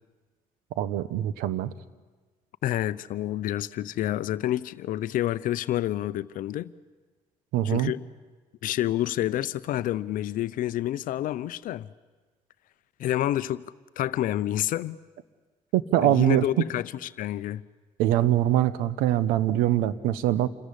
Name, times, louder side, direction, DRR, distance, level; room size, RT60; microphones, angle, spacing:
voice 1, 0.8-1.7 7.5-7.9 15.7-16.5 18.0-20.5, right 12 dB, 90° right, 0.9 m, -23 dB
voice 2, 2.6-6.7 7.6-8.0 8.6-11.9 13.0-13.6 14.0-15.0 16.0-17.6, left 13 dB, 70° left, 0.7 m, -28 dB
27.0 x 14.5 x 10.0 m
supercardioid pair, 70°, 14 cm